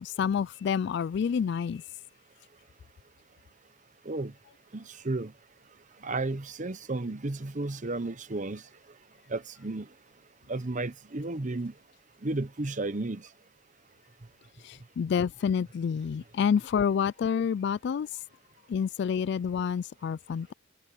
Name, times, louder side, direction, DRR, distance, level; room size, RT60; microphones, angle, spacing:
voice 1, 0.0-1.8 14.6-18.1 18.7-20.5, left 7 dB, 60° left, 0.3 m, -28 dB
voice 2, 4.7-5.3 6.0-8.6 9.3-9.9 10.5-11.7 12.2-13.3, right 2 dB, 40° right, 1.0 m, -33 dB
open air
head